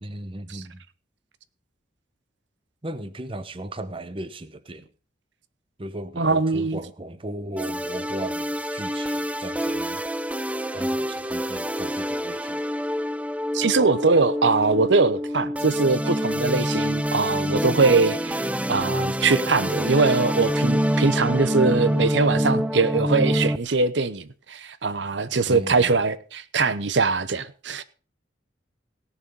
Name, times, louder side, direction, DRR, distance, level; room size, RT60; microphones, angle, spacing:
voice 1, 0.0-0.8 2.8-4.9 5.8-10.0 10.7-12.6 25.5-25.9, right 1 dB, 30° right, 0.8 m, -36 dB
voice 2, 6.2-6.8 13.5-27.8, right 4 dB, 70° right, 0.9 m, -22 dB
sound 1, 7.6-23.6, equal, 5° right, 0.5 m, -26 dB
17.5 x 7.1 x 5.2 m
head